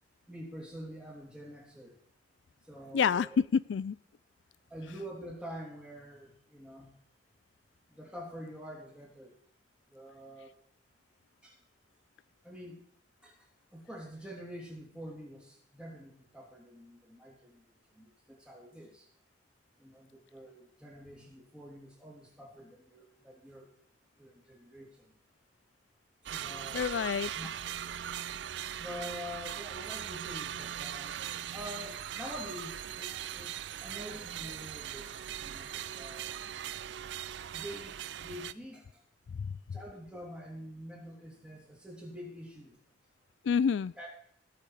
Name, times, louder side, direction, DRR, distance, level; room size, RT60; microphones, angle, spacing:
voice 1, 0.3-2.0 2.6-3.4 4.7-7.0 7.9-9.4 9.9-10.5 11.4-11.6 12.4-12.8 13.2-13.5 13.7-19.1 19.8-23.7 24.2-25.1 26.2-27.5 28.6-33.6 33.8-36.4 37.4-39.0 39.7-42.8 44.0-44.1, equal, 5° right, -1 dB, 3.2 m, -46 dB
voice 2, 2.9-4.0 26.7-27.3 39.4-39.6 43.4-43.9, left 6 dB, 80° left, 19 dB, 0.3 m, -28 dB
sound 1, 26.3-38.5, right 10 dB, 70° right, 0.4 m, -40 dB
17.5 x 6.7 x 4.8 m, 0.64 s
head